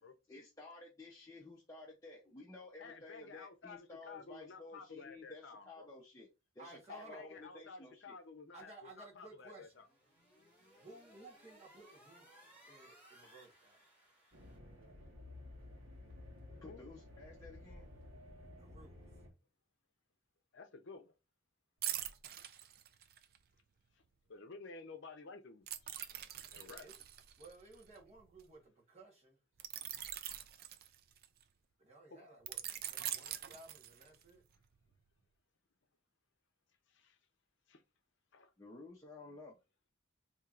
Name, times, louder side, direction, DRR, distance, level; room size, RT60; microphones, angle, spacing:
voice 1, 0.3-6.3 6.5-8.1 16.6-17.8 38.6-39.6, left 3 dB, 15° left, 0.6 m, -53 dB
voice 2, 2.8-5.9 6.9-9.9 13.2-13.3 16.5-16.9 20.5-21.1 24.3-25.7 26.5-26.9 32.1-32.3 36.9-37.2 37.7-37.8 38.3-38.5, left 4 dB, 60° left, 0.6 m, -52 dB
voice 3, 6.6-7.2 8.5-9.7 10.7-12.3 12.7-13.8 18.5-19.0 26.8-26.9 27.4-29.4 31.8-34.4, right 2 dB, 30° right, 1.3 m, -57 dB
sound 1, 9.6-14.6, right 1 dB, 10° right, 1.9 m, -63 dB
sound 2, 14.3-19.3, left 2 dB, 80° right, 1.3 m, -54 dB
sound 3, 21.8-23.4 25.7-28.4 29.6-31.4 32.5-34.3 34.7-34.9, right 11 dB, 50° right, 0.3 m, -43 dB
4.3 x 2.8 x 2.4 m
head